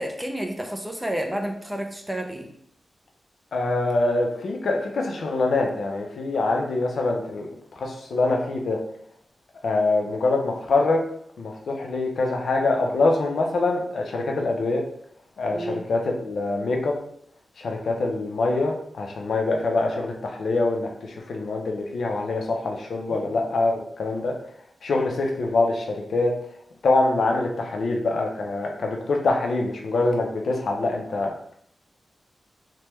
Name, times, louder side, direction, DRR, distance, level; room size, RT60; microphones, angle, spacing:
voice 1, 0.0-2.5 15.5-15.8 23.1-23.3, right 1 dB, 10° right, 3 dB, 0.3 m, -30 dB
voice 2, 3.5-7.5 7.8-8.8 9.6-11.0 11.4-14.8 15.4-17.0 17.6-24.3 24.8-26.3 26.8-31.3, left 2 dB, 70° left, 1 dB, 0.5 m, -24 dB
3.3 x 2.1 x 2.9 m, 0.66 s
wide cardioid pair, 155°, 0 cm